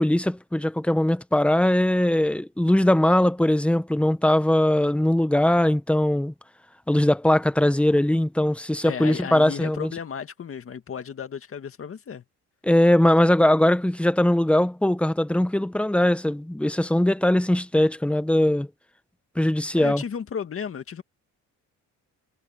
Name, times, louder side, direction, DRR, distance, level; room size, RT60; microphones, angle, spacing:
voice 1, 0.0-6.3 6.9-9.9 12.6-18.7 19.4-20.0, left 1 dB, 5° left, 1.0 m, -20 dB
voice 2, 8.8-12.2 19.8-21.0, left 7 dB, 45° left, 2.0 m, -34 dB
cardioid pair, 90°, 30 cm